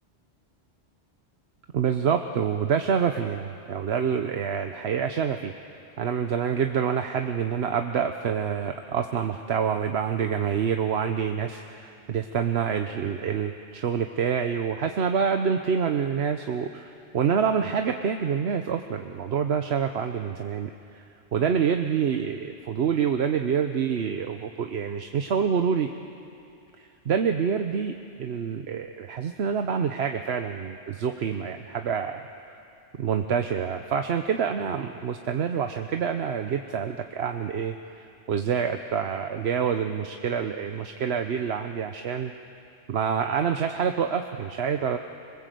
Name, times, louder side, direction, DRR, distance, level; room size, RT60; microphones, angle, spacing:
voice 1, 1.7-5.5 6.0-21.0 21.3-25.9 26.8-32.2 33.0-42.3 42.9-45.0, right 7 dB, 70° right, 6 dB, 1.1 m, -27 dB
26.5 x 21.0 x 7.7 m, 2.6 s
omnidirectional pair, 1.2 m